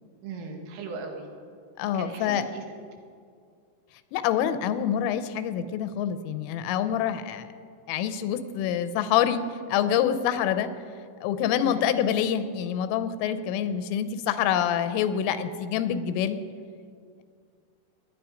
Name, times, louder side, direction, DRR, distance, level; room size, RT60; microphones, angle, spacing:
voice 1, 0.2-1.3 1.9-2.6 11.6-11.9, right 4 dB, 85° right, 3 dB, 4.3 m, -37 dB
voice 2, 1.8-2.4 4.1-7.5 7.9-9.4 9.7-10.7 11.2-16.4, left 9 dB, 85° left, 11 dB, 3.3 m, -26 dB
21.5 x 10.0 x 5.1 m, 2.2 s
omnidirectional pair, 5.7 m